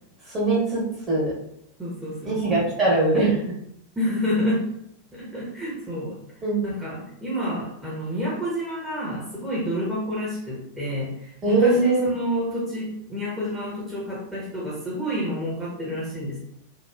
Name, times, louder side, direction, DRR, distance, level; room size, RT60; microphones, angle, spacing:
voice 1, 0.3-0.8 1.1-1.3 2.2-3.4 6.4-6.6 11.4-12.1, right 2 dB, 25° right, -6 dB, 1.3 m, -21 dB
voice 2, 1.8-2.6 4.0-4.7 5.1-6.2 6.6-16.4, equal, 5° right, -8 dB, 0.9 m, -29 dB
2.9 x 2.4 x 2.4 m, 0.75 s
figure-of-eight pair, 90°, 0 cm